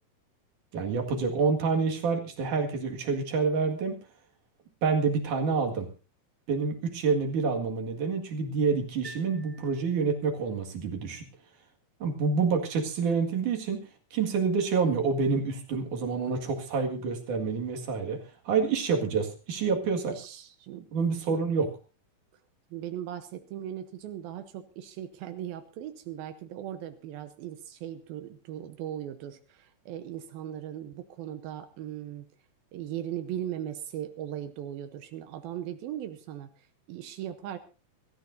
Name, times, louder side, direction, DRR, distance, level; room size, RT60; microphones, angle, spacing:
voice 1, 0.7-4.0 4.8-5.9 6.5-11.3 12.0-20.1 20.9-21.7, right 5 dB, 60° right, 3 dB, 3.3 m, -28 dB
sound 1, 9.0-10.5, right 2 dB, 10° right, 3.0 m, -49 dB
voice 2, 20.1-20.8 21.3-21.4 22.7-32.3 32.7-36.5 36.9-37.6, right 11 dB, 80° right, 9 dB, 2.7 m, -38 dB
24.5 x 13.5 x 2.7 m, 0.32 s
omnidirectional pair, 4.2 m